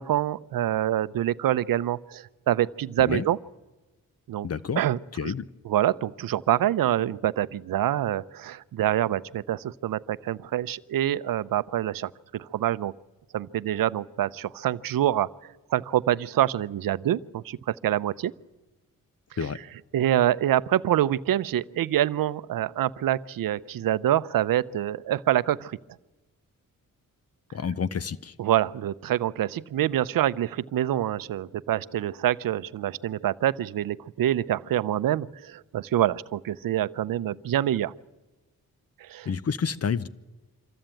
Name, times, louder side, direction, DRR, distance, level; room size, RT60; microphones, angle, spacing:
voice 1, 0.0-3.4 4.3-4.5 4.8-5.3 5.6-12.9 13.3-18.3 19.9-25.8 28.4-37.9 39.0-39.3, right 12 dB, 70° right, 17 dB, 0.6 m, -26 dB
voice 2, 4.4-4.8 5.2-5.5 19.4-19.6 27.5-28.3 39.3-40.1, left 6 dB, 45° left, 18 dB, 0.8 m, -29 dB
24.5 x 14.0 x 9.0 m, 1.2 s
cardioid pair, 80°, 35 cm